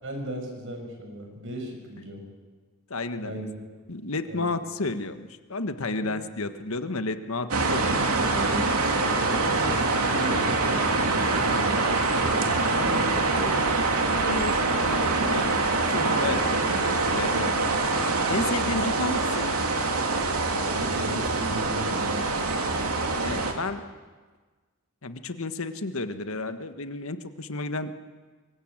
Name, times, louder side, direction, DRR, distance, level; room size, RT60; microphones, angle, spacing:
voice 1, 0.0-2.3 3.2-3.5 4.3-4.5 5.9-6.1 8.5-13.6 14.7-14.8 16.2-16.4 21.0-22.7, equal, 60° right, 3 dB, 6.4 m, -37 dB
voice 2, 2.9-3.4 3.9-8.0 14.2-14.5 14.8-16.4 17.1-17.5 18.3-19.5 23.2-23.8 25.0-27.9, left 3 dB, 70° left, 9 dB, 1.5 m, -32 dB
sound 1, 7.5-23.5, right 3 dB, 85° right, 3.0 m, -24 dB
24.0 x 21.0 x 8.9 m, 1.4 s
head